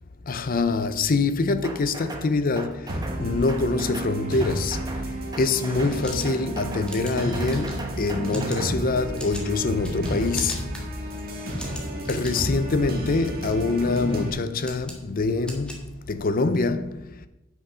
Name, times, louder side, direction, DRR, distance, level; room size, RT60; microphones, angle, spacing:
voice 1, 0.3-4.8 5.4-10.7 12.1-15.8 16.1-17.0, left 3 dB, 40° left, 0.5 m, -25 dB
sound 1, 1.6-2.3 2.6-3.2 3.5-4.1 4.4-5.0 5.3-6.0 6.2-6.9 7.2-8.7, right 2 dB, 20° right, 1.0 m, -38 dB
sound 2, 2.9-14.3, right 1 dB, 45° right, 2.0 m, -31 dB
sound 3, 6.0-16.5, equal, 5° left, 1.5 m, -42 dB
8.8 x 6.3 x 5.6 m
head